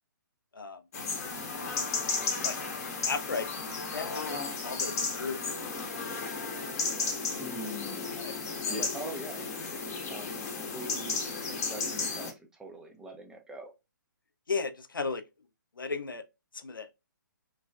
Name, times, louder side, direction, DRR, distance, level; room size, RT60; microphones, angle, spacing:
sound 1, 0.9-12.3, left 4 dB, 50° left, 0.8 m, -34 dB
voice 1, 3.1-5.4 5.7-5.8 8.2-8.3 8.7-8.9 14.5-15.2 15.8-16.2 16.5-16.9, left 4 dB, 80° left, 0.4 m, -35 dB
voice 2, 7.4-8.1 8.7-10.5 10.7-11.2 11.5-13.7, right 1 dB, 5° right, 0.4 m, -43 dB
3.1 x 2.3 x 2.2 m
figure-of-eight pair, 130°, 11 cm